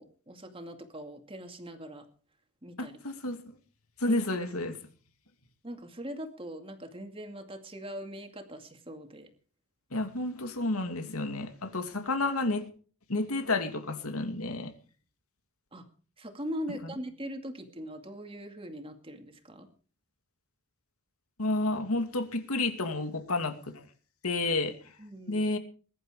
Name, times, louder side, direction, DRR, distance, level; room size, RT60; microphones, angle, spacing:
voice 1, 0.0-2.1 2.6-3.0 4.1-4.2 5.6-9.3 15.7-15.9 16.2-19.7 25.0-25.5, equal, 25° right, 2.3 m, -41 dB
voice 2, 2.8-3.6 4.0-4.8 9.9-12.7 13.1-14.7 16.8-16.9 21.4-23.8 24.2-24.9 25.3-25.6, left 2 dB, 80° left, 2.5 m, -31 dB
21.5 x 11.5 x 5.0 m
head